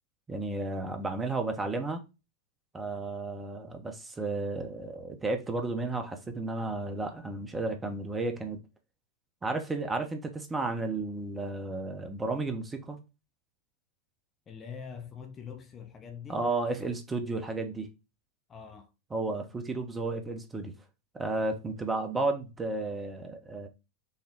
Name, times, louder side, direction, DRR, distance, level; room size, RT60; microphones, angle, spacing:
voice 1, 0.3-2.0 2.7-8.6 9.4-13.0 16.3-17.9 19.1-20.7 21.1-23.7, right 2 dB, 15° right, 0.7 m, -33 dB
voice 2, 14.5-16.5 18.5-18.9, left 6 dB, 25° left, 0.6 m, -44 dB
5.5 x 2.1 x 3.5 m
figure-of-eight pair, 90°, 0 cm